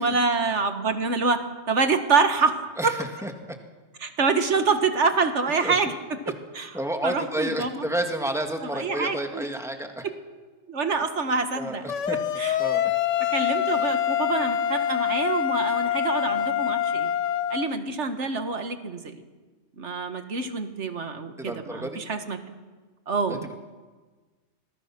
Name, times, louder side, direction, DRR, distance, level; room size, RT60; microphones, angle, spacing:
voice 1, 0.0-3.0 4.0-6.7 7.0-7.9 8.6-9.5 10.0-10.2 10.7-11.8 12.1-12.6 13.2-17.1 17.5-19.2 19.8-22.4 23.1-23.5, right 4 dB, 70° right, 8 dB, 1.9 m, -26 dB
voice 2, 2.8-3.6 5.6-5.8 6.7-10.0 11.6-12.2 12.6-12.8 21.4-22.0 23.3-23.5, right 1 dB, ahead, 4 dB, 2.0 m, -31 dB
sound 1, 11.9-17.7, left 9 dB, 80° left, 1.2 m, -25 dB
25.5 x 20.5 x 6.0 m, 1.3 s
omnidirectional pair, 1.2 m